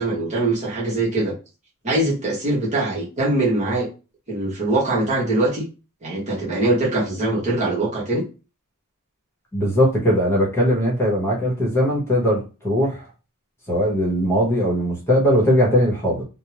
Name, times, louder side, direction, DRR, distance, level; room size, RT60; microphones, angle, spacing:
voice 1, 0.0-1.3 1.8-3.9 4.3-5.6 6.0-8.2, right 2 dB, 35° right, -5 dB, 0.9 m, -22 dB
voice 2, 9.5-13.0 13.7-16.2, equal, 10° left, -4 dB, 1.0 m, -19 dB
2.5 x 2.0 x 3.0 m, 0.32 s
head